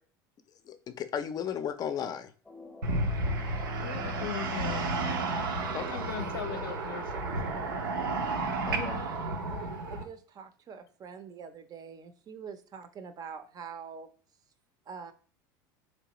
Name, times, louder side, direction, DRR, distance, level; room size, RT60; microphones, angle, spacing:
voice 1, 0.7-2.3 5.7-6.0 8.7-9.0, left 8 dB, 35° left, 11 dB, 0.5 m, -35 dB
sound 1, 2.4-7.9, left 2 dB, 5° left, 0.7 m, -48 dB
sound 2, 2.8-10.0, right 2 dB, 85° right, 0.7 m, -32 dB
voice 2, 3.8-5.0 5.9-7.6, left 9 dB, 85° left, 8 dB, 0.5 m, -40 dB
voice 3, 9.9-14.1 14.9-15.1, right 6 dB, 35° right, 10 dB, 0.5 m, -44 dB
3.6 x 3.1 x 2.9 m, 0.41 s
hypercardioid pair, 90°, 11 cm